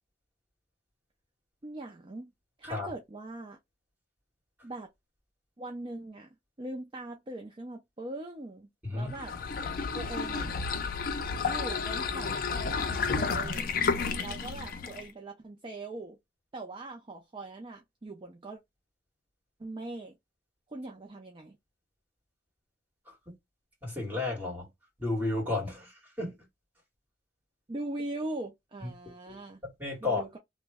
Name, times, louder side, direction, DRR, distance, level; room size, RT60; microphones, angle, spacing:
voice 1, 1.6-2.3 2.6-3.6 4.6-4.9 5.6-6.3 6.6-9.3 9.9-10.6 11.4-13.7 14.2-16.2 16.5-18.6 19.6-20.2 20.7-21.6 27.7-29.6 30.0-30.4, right 2 dB, 30° right, 0.5 m, -41 dB
sound 1, 9.1-15.1, left 5 dB, 50° left, 0.4 m, -31 dB
voice 2, 23.8-24.7 25.0-26.4 28.8-28.9 29.3-29.4 29.8-30.2, left 2 dB, 10° right, 1.9 m, -33 dB
3.0 x 2.1 x 3.5 m
head